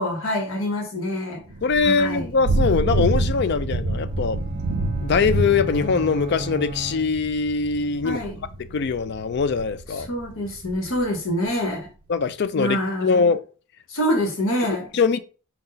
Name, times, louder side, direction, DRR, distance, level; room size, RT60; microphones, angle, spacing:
voice 1, 0.0-1.4 1.8-2.3 8.0-8.4 10.0-11.9 12.6-13.3 13.9-14.9, equal, 70° left, 1.1 m, -26 dB
Thunder / Rain, 1.5-11.0, right 2 dB, 75° right, 0.5 m, -27 dB
voice 2, 1.6-4.4 5.0-8.2 8.7-10.1 12.1-13.4 14.9-15.2, left 5 dB, 55° left, 0.4 m, -22 dB
sound 1, 4.0-7.6, right 2 dB, 30° right, 0.6 m, -36 dB
5.4 x 2.3 x 3.8 m
head